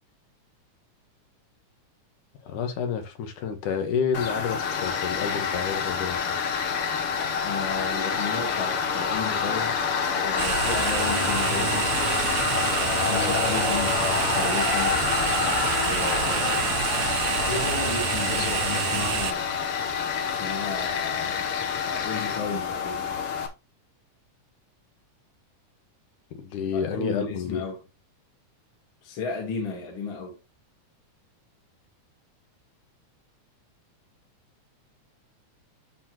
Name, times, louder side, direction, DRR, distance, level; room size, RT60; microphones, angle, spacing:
voice 1, 2.4-6.2 26.3-27.6, left 6 dB, 80° left, 2.8 m, -29 dB
Tools, 4.1-23.5, left 6 dB, 60° left, 1.6 m, -27 dB
voice 2, 7.4-9.8 10.2-11.9 13.0-15.0 15.8-16.9 17.4-19.6 20.2-23.1 26.6-27.8 29.0-30.4, left 4 dB, 45° left, 2.3 m, -34 dB
sound 1, 10.4-19.3, right 13 dB, 75° right, 1.9 m, -28 dB
12.5 x 4.2 x 3.0 m
omnidirectional pair, 3.6 m